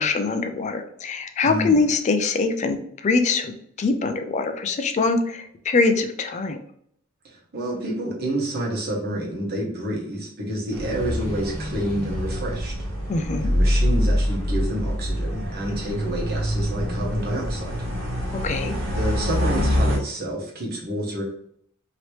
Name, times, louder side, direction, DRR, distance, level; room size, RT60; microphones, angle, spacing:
voice 1, 0.0-3.5 3.8-6.6 13.1-13.5 18.3-18.8, left 3 dB, 35° left, 7 dB, 0.3 m, -23 dB
voice 2, 1.4-1.8 7.2-12.7 13.4-17.8 18.9-21.2, right 1 dB, 50° right, -2 dB, 1.0 m, -29 dB
sound 1, 10.7-20.0, equal, 75° right, 0.9 m, -25 dB
2.9 x 2.9 x 3.1 m, 0.66 s
head